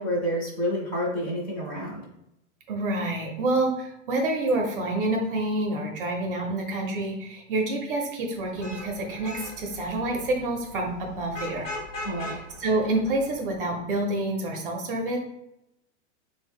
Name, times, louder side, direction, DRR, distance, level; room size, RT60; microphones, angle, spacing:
voice 1, 0.0-2.0 12.0-12.4, equal, 25° left, -3 dB, 0.6 m, -29 dB
voice 2, 2.7-11.7 12.2-15.2, right 2 dB, 45° right, 2 dB, 0.5 m, -28 dB
Vehicle horn car horn honking / Traffic noise roadway noise, 8.4-13.7, left 2 dB, 65° left, 0.9 m, -40 dB
3.3 x 2.0 x 3.4 m, 0.83 s
supercardioid pair, 165°, 40 cm